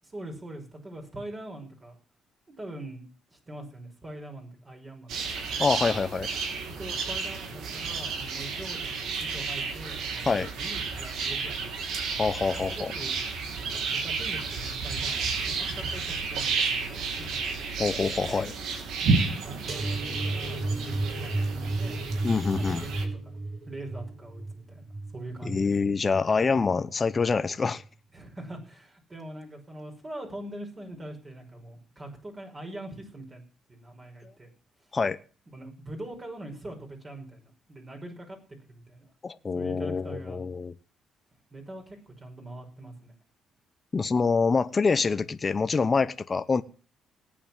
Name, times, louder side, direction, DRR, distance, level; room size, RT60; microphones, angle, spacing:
voice 1, 0.0-2.0 2.6-3.0 3.3-5.4 6.8-8.9 9.2-11.9 12.7-13.2 13.6-17.5 19.2-22.1 22.5-23.4 23.7-24.8 25.1-25.8 28.1-33.4 33.7-34.5 34.8-34.9 35.5-38.4 38.7-39.1 39.5-40.4 41.5-43.1, right 1 dB, 30° right, 5.7 m, -43 dB
sound 1, 5.1-23.0, right 4 dB, 80° right, 3.2 m, -31 dB
voice 2, 5.6-6.3 10.3-10.5 12.2-12.9 17.8-18.5 22.2-22.8 25.4-27.8 34.9-35.2 39.2-40.7 43.9-46.6, left 4 dB, 35° left, 0.9 m, -26 dB
sound 2, 19.7-26.7 27.1-27.4 27.7-27.9, right 2 dB, 50° right, 6.4 m, -33 dB
18.5 x 8.7 x 7.4 m
cardioid pair, 90°, 0 cm